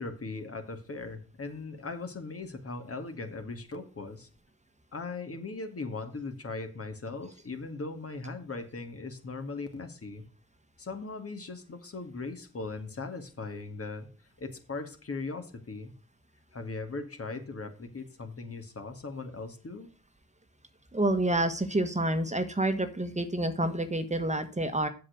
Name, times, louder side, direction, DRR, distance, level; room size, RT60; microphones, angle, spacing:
voice 1, 0.0-4.3 4.9-10.2 10.8-14.1 14.4-15.9 16.5-19.9, left 3 dB, 40° left, 6 dB, 2.1 m, -39 dB
voice 2, 20.9-24.9, right 1 dB, 20° right, 9 dB, 1.5 m, -28 dB
7.6 x 6.5 x 6.6 m, 0.35 s
supercardioid pair, 45°, 34 cm